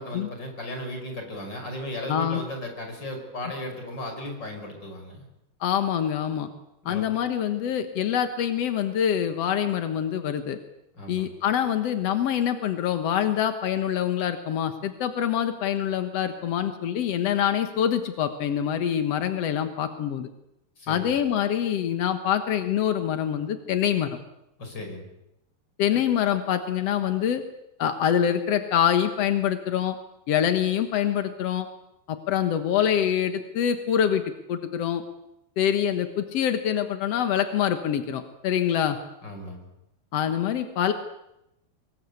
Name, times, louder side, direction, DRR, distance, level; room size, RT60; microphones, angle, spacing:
voice 1, 0.0-5.2 6.8-7.0 10.9-11.3 20.8-21.1 24.6-25.1 39.2-39.7, left 1 dB, 25° left, 4 dB, 5.9 m, -36 dB
voice 2, 2.1-2.4 5.6-6.5 6.8-10.6 11.1-20.3 20.9-24.2 25.8-27.4 27.8-30.0 30.3-31.7 32.1-34.2 34.5-35.0 35.6-39.0 40.1-40.9, left 9 dB, 70° left, 8 dB, 1.5 m, -25 dB
24.5 x 22.0 x 8.3 m, 0.84 s
omnidirectional pair, 4.8 m